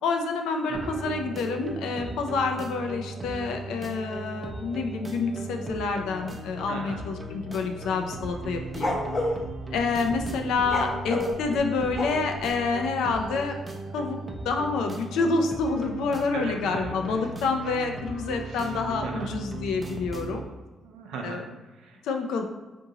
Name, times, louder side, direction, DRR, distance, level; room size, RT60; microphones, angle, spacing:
voice 1, 0.0-9.0 9.7-13.5 13.9-14.2 14.4-20.4 21.2-21.4 22.0-22.4, left 4 dB, 85° left, 4 dB, 0.4 m, -28 dB
sound 1, 0.7-20.4, right 2 dB, 25° right, 0.4 m, -38 dB
voice 2, 6.7-7.0 16.3-17.3 18.5-19.3 20.8-22.0, right 4 dB, 85° right, 2 dB, 0.5 m, -39 dB
sound 2, 8.3-9.4 10.6-12.5, left 1 dB, 35° left, 0.5 m, -29 dB
3.8 x 2.6 x 2.8 m, 1.2 s
cardioid pair, 90°, 0 cm